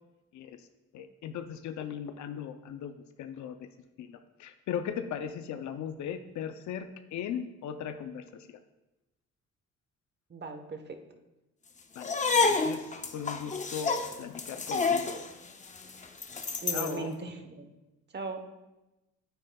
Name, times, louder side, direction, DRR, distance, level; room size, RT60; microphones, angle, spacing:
voice 1, 0.3-0.7 0.9-2.9 3.2-3.7 4.0-8.6 11.9-13.9 14.2-15.2 16.7-17.2, left 8 dB, 70° left, 8 dB, 0.5 m, -38 dB
voice 2, 10.3-11.0 16.6-17.7 18.1-18.4, right 3 dB, 35° right, 6 dB, 1.0 m, -38 dB
sound 1, 12.0-17.0, left 4 dB, 25° left, 0.6 m, -29 dB
9.1 x 8.7 x 2.3 m, 1.0 s
cardioid pair, 90°, 30 cm